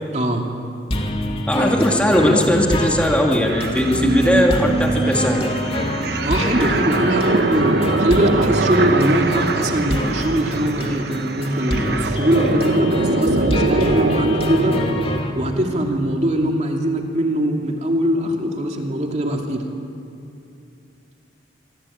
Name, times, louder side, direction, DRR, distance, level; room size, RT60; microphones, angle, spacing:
voice 1, 0.1-0.5 6.2-14.8 15.3-19.7, right 1 dB, 35° right, 1 dB, 2.7 m, -21 dB
sound 1, 0.9-15.3, left 1 dB, 30° left, 2.6 m, -26 dB
voice 2, 1.5-5.5, equal, 5° left, 0 dB, 2.5 m, -18 dB
sound 2, 3.5-15.2, right 3 dB, 55° right, 1.0 m, -23 dB
26.0 x 25.0 x 8.7 m, 2.6 s
head